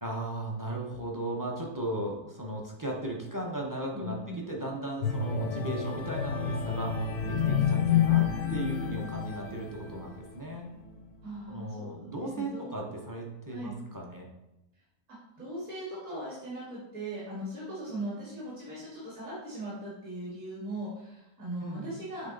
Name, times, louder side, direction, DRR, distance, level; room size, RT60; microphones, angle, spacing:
voice 1, 0.0-10.7 11.5-14.3 21.6-21.9, right 1 dB, 20° right, -2 dB, 0.6 m, -36 dB
voice 2, 3.9-4.5 11.2-12.7 13.5-13.7 15.4-22.3, right 1 dB, 50° right, -7 dB, 2.4 m, -39 dB
sound 1, 5.0-10.3 10.8-11.0, left 7 dB, 85° left, 1.3 m, -29 dB
8.1 x 3.5 x 3.9 m, 0.93 s
omnidirectional pair, 1.8 m